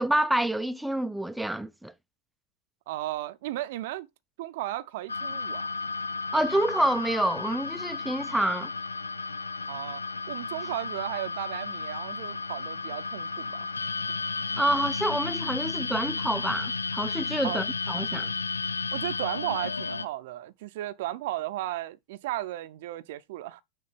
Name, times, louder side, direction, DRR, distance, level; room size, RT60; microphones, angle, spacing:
voice 1, 0.0-1.9 6.3-8.7 14.6-18.3, right 1 dB, ahead, 0.4 m, -27 dB
voice 2, 2.9-4.1 4.4-5.7 9.7-10.0 10.3-13.7 14.4-14.6 17.4-17.7 18.9-23.6, right 15 dB, 55° right, 0.6 m, -35 dB
sound 1, 5.1-20.0, left 4 dB, 80° left, 0.4 m, -33 dB
6.7 x 3.2 x 6.0 m
figure-of-eight pair, 90°, 0 cm